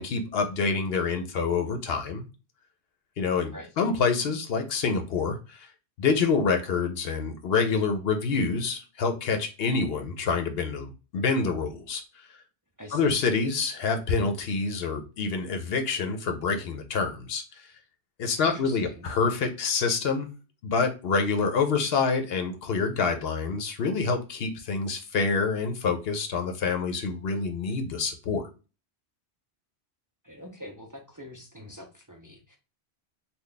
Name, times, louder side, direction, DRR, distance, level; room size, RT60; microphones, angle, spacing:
voice 1, 0.0-2.3 3.2-5.7 6.0-12.0 12.9-17.7 18.2-20.3 20.6-28.5, left 4 dB, 70° left, 6 dB, 0.8 m, -27 dB
voice 2, 12.8-13.1 18.4-19.1 30.2-32.6, equal, 25° right, 1 dB, 0.4 m, -44 dB
3.3 x 2.3 x 3.8 m, 0.32 s
omnidirectional pair, 1.1 m